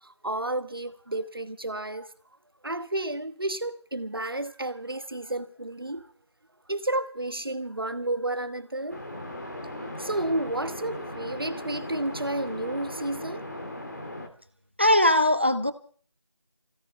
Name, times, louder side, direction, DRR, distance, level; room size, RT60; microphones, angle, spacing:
voice 1, 0.0-2.1 2.6-6.1 6.7-13.4, right 1 dB, 50° right, 1.2 m, -32 dB
sound 1, 8.9-14.3, left 1 dB, 40° left, 2.3 m, -38 dB
voice 2, 14.8-15.7, left 1 dB, 25° right, 0.7 m, -20 dB
25.5 x 17.0 x 3.3 m
figure-of-eight pair, 175°, 15 cm